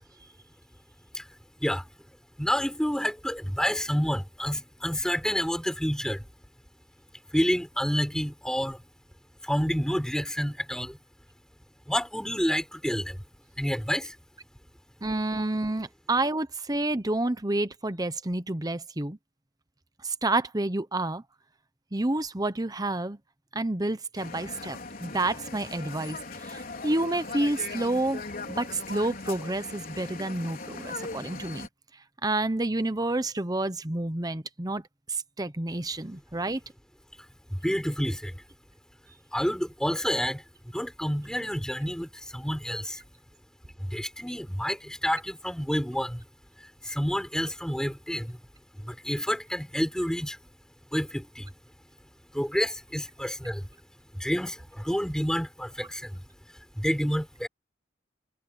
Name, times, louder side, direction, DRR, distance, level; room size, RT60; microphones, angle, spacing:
voice 1, 2.4-6.3 7.3-8.8 9.4-11.0 11.9-13.2 13.6-14.2 37.5-38.4 39.3-43.0 43.8-46.2 46.6-48.4 48.8-50.4 50.9-51.5 52.3-53.7 54.1-56.2 56.7-57.5, equal, 5° left, 5.5 m, -29 dB
voice 2, 15.0-19.2 20.0-21.2 21.9-23.2 23.5-31.7 32.2-34.8 35.1-36.6, right 2 dB, 20° right, 1.0 m, -29 dB
sound 1, 24.2-31.7, left 3 dB, 50° left, 4.3 m, -39 dB
head